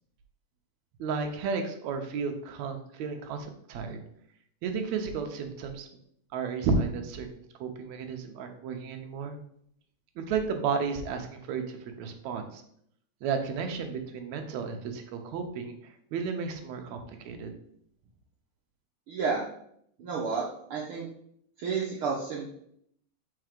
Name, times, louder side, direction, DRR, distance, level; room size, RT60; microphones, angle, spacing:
voice 1, 1.0-4.0 4.6-5.9 6.3-7.3 7.6-9.4 10.2-12.6 13.2-17.5, right 5 dB, 75° right, 5 dB, 1.9 m, -33 dB
voice 2, 19.1-19.5 20.0-21.1 21.6-22.5, right 5 dB, 90° right, -3 dB, 1.1 m, -31 dB
4.5 x 4.1 x 5.1 m, 0.69 s
omnidirectional pair, 3.6 m